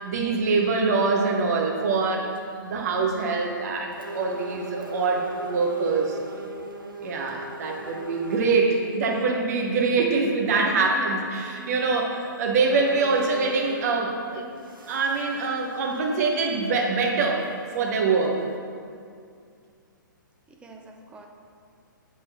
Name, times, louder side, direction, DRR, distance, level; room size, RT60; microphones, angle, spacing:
voice 1, 0.0-2.3 2.6-6.2 7.0-14.5 14.9-17.5 17.7-18.4, right 4 dB, 50° right, 1 dB, 1.0 m, -24 dB
sound 1, 1.5-1.7 2.2-2.6 3.2-3.3 3.9-8.6 9.2-9.3 11.7-11.8 12.2-12.3 12.7-14.1 14.5-16.4 16.7-16.8 17.4-17.5 18.2-18.6, right 2 dB, 85° right, 0.8 m, -40 dB
voice 2, 10.8-11.3 20.5-21.3, right 2 dB, 10° right, 2 dB, 0.6 m, -43 dB
9.8 x 3.7 x 4.1 m, 2.3 s
figure-of-eight pair, 125°, 11 cm